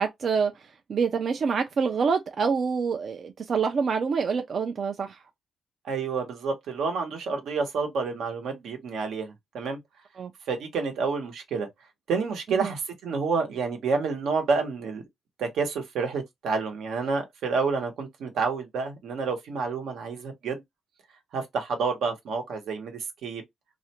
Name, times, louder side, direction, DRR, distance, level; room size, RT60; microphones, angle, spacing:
voice 1, 0.0-5.2 10.2-10.3 12.5-12.7, right 5 dB, 50° right, 0.3 m, -26 dB
voice 2, 5.9-9.8 10.5-11.7 12.1-15.0 15.4-20.6 21.3-23.4, right 4 dB, 85° right, 0.8 m, -29 dB
2.4 x 2.1 x 2.8 m
cardioid pair, 110°, 0 cm